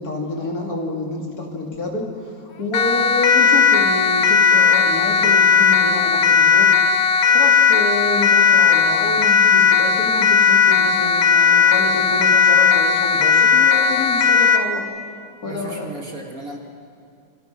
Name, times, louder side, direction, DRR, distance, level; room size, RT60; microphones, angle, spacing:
voice 1, 0.0-6.7 7.3-14.8 15.4-15.9, left 2 dB, 45° left, 0 dB, 3.6 m, -28 dB
Siren, 2.7-14.7, left 6 dB, 65° left, 1.8 m, -16 dB
voice 2, 15.4-16.6, right 2 dB, 40° right, 1 dB, 2.7 m, -34 dB
28.0 x 25.5 x 6.1 m, 2.4 s
omnidirectional pair, 2.3 m